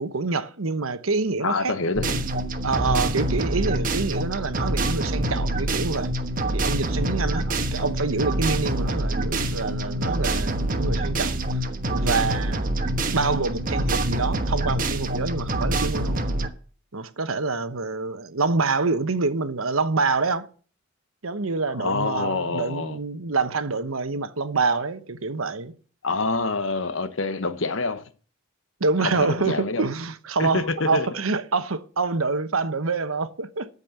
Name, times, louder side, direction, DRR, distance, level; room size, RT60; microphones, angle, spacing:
voice 1, 0.0-1.7 2.6-6.1 6.5-11.6 11.9-12.7 13.1-16.2 16.9-20.5 21.2-25.7 28.8-33.7, right 4 dB, 90° right, 1.1 m, -26 dB
voice 2, 1.4-2.2 21.7-23.0 26.0-28.0 29.0-29.9 30.4-31.1, left 3 dB, 65° left, 1.0 m, -26 dB
sound 1, 1.9-16.5, right 1 dB, 40° right, 1.2 m, -26 dB
13.5 x 5.4 x 7.7 m
head